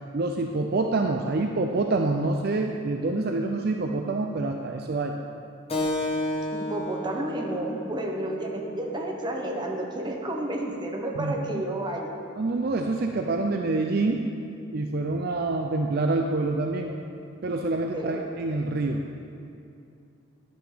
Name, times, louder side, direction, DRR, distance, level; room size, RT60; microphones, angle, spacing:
voice 1, 0.1-5.2 11.2-11.6 12.4-14.3 14.7-16.9 17.4-19.0, right 2 dB, 45° right, 3 dB, 0.4 m, -26 dB
Keyboard (musical), 5.7-10.8, left 1 dB, 30° left, 1.1 m, -33 dB
voice 2, 6.5-12.1 17.9-18.2, right 1 dB, 20° right, 0 dB, 0.9 m, -31 dB
10.5 x 7.8 x 5.1 m, 2.6 s
head